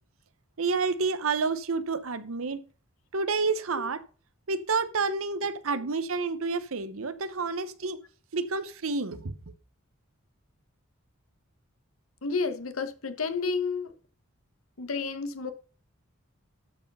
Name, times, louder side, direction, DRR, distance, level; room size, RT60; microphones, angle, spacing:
voice 1, 0.6-2.6 3.1-4.0 4.5-8.0 8.3-9.3, right 4 dB, 80° right, 0.9 m, -29 dB
voice 2, 12.2-13.9 14.8-15.5, left 4 dB, 90° left, 1.2 m, -30 dB
12.5 x 4.8 x 5.4 m
head